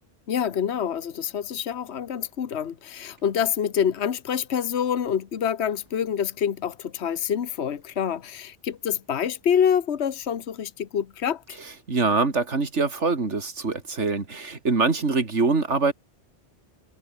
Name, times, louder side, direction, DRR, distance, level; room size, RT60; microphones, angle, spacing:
voice 1, 0.3-11.6, left 8 dB, 70° left, 1.3 m, -26 dB
voice 2, 11.9-15.9, right 4 dB, 80° right, 2.9 m, -24 dB
omnidirectional pair, 1.2 m